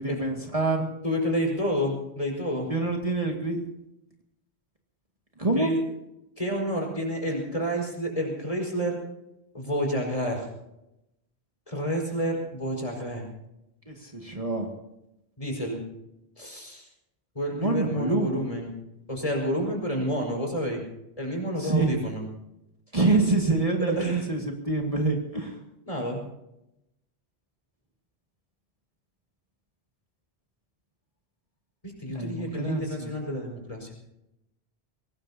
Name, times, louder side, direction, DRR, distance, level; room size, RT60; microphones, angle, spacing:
voice 1, 0.0-0.9 2.7-3.6 5.4-5.8 13.9-14.7 17.5-18.5 21.6-21.9 22.9-25.6 32.1-33.1, right 3 dB, 35° right, 0 dB, 2.1 m, -26 dB
voice 2, 1.0-2.7 5.5-5.8 6.4-9.0 9.5-10.5 11.7-13.3 15.4-15.8 16.4-16.8 17.3-18.7 19.1-20.8 21.2-22.2 24.0-24.2 25.9-26.2 31.8-33.9, equal, 30° left, 0 dB, 5.1 m, -29 dB
23.5 x 19.5 x 2.8 m, 0.87 s
omnidirectional pair, 1.1 m